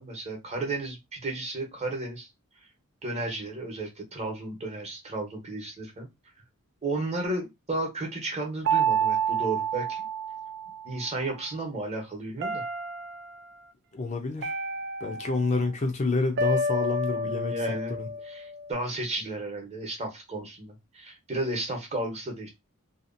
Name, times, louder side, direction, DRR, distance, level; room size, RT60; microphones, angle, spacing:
voice 1, 0.0-2.3 3.0-6.1 6.8-10.0 10.8-12.6 17.2-18.0 18.2-22.5, right 2 dB, 30° right, 0.9 m, -33 dB
sound 1, 8.6-11.0 12.4-13.4 14.4-15.7 16.4-18.7, right 3 dB, 50° right, 0.4 m, -29 dB
voice 2, 13.9-14.5 15.0-18.1, left 3 dB, 35° left, 0.5 m, -29 dB
2.8 x 2.4 x 2.5 m
head